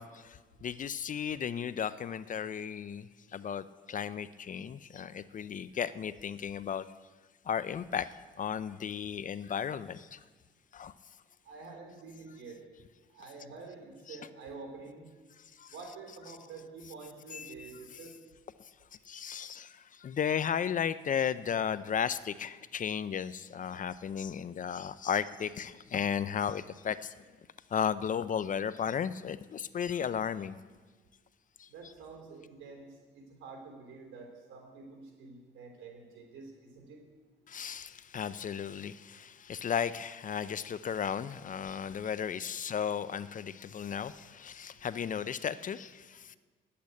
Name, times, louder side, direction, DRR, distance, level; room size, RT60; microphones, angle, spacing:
voice 1, 0.0-6.8 7.5-8.1 8.4-10.2 10.7-10.9 14.1-14.2 15.6-15.7 17.3-17.7 19.1-27.1 27.7-30.6 31.6-31.7 37.5-46.4, left 8 dB, 40° left, 15 dB, 0.5 m, -35 dB
voice 2, 11.5-12.6 13.1-15.1 15.7-18.1 31.7-37.0, right 4 dB, 80° right, 2 dB, 3.5 m, -48 dB
10.0 x 8.5 x 8.4 m, 1.4 s
cardioid pair, 90°, 20 cm